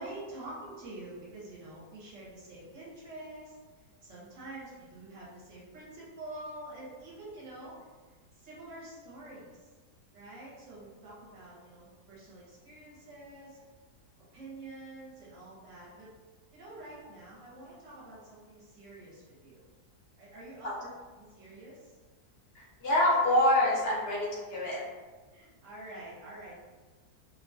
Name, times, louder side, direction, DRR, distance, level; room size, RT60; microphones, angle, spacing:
voice 1, 0.0-3.5 4.0-7.8 8.3-9.7 10.1-13.6 14.3-16.1 16.5-19.6 20.2-20.9 21.2-22.0 25.2-26.6, right 2 dB, 55° right, -7 dB, 1.2 m, -47 dB
voice 2, 22.5-24.8, left 1 dB, 60° left, -6 dB, 0.6 m, -26 dB
2.8 x 2.3 x 2.5 m, 1.3 s
omnidirectional pair, 1.7 m